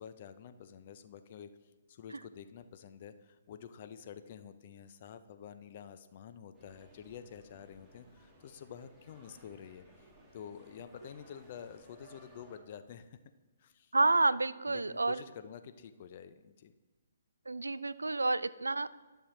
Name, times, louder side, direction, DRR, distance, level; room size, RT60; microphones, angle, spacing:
voice 1, 0.0-1.5 1.9-10.1 10.3-13.2 13.6-13.9 14.7-16.7, left 8 dB, 45° left, 10 dB, 0.6 m, -49 dB
sound 1, 6.5-12.6, right 1 dB, ahead, 1.6 m, -60 dB
voice 2, 13.9-15.2 17.5-18.9, right 3 dB, 85° right, 17 dB, 0.3 m, -29 dB
11.0 x 6.8 x 3.1 m, 1.2 s
figure-of-eight pair, 135°, 0 cm